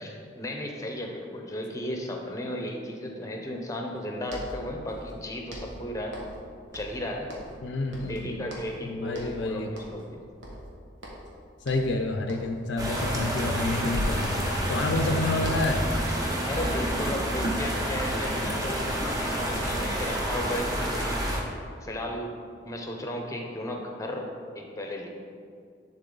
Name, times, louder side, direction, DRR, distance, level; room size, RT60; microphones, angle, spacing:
voice 1, 0.0-6.2 6.7-7.4 8.0-10.2 16.4-21.2 21.8-22.3 22.6-24.3 24.5-25.1, left 1 dB, 15° left, 2 dB, 0.7 m, -35 dB
sound 1, 4.0-4.1 4.3-5.2 5.5-6.5 6.7-7.7 7.9-8.8 9.1-9.4 9.8-10.1 10.4-11.3 11.7-12.0 12.3-12.6 12.9-14.6 14.8-16.5, equal, 80° right, 1.4 m, -42 dB
voice 2, 7.6-9.7 11.6-15.9, left 2 dB, 70° left, 4 dB, 0.5 m, -29 dB
sound 2, 12.8-21.4, equal, 20° right, 0.9 m, -28 dB
10.5 x 4.0 x 3.9 m, 2.2 s
head